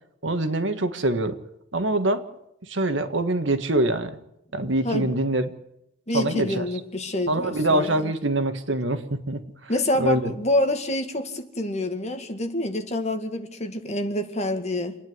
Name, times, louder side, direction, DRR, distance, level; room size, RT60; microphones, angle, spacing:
voice 1, 0.2-1.4 1.7-2.2 2.7-4.2 4.5-5.5 6.1-6.6 7.3-9.7 10.0-10.3, right 1 dB, 75° right, 1.7 m, -24 dB
voice 2, 6.1-8.1 9.7-15.0, left 1 dB, 35° left, 2.0 m, -27 dB
27.5 x 10.0 x 9.6 m
head